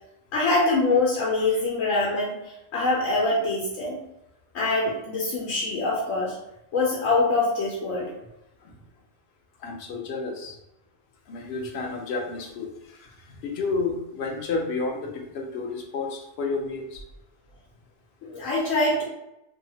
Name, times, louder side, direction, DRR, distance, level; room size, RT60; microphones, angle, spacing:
voice 1, 0.3-4.0 4.5-6.4 6.7-8.1 18.2-19.0, left 2 dB, 90° left, -5 dB, 1.0 m, -24 dB
voice 2, 9.6-10.6 11.3-12.7 13.4-17.0, left 3 dB, 65° left, 2 dB, 0.8 m, -30 dB
2.7 x 2.3 x 2.7 m, 0.86 s
omnidirectional pair, 1.3 m